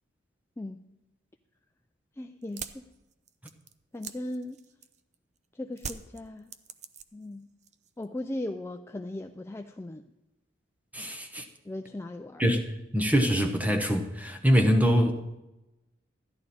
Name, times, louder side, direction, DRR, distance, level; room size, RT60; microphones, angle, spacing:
voice 1, 2.2-2.9 3.9-4.6 5.5-6.5 7.1-7.5 8.0-10.1 11.6-12.4, left 1 dB, 15° left, 5 dB, 0.3 m, -38 dB
sound 1, 2.4-5.1 5.8-7.3 7.6-8.2, right 7 dB, 35° right, 0.5 m, -42 dB
voice 2, 10.9-11.5 12.4-15.1, equal, 10° right, 5 dB, 1.0 m, -24 dB
14.0 x 11.0 x 4.2 m, 0.98 s
head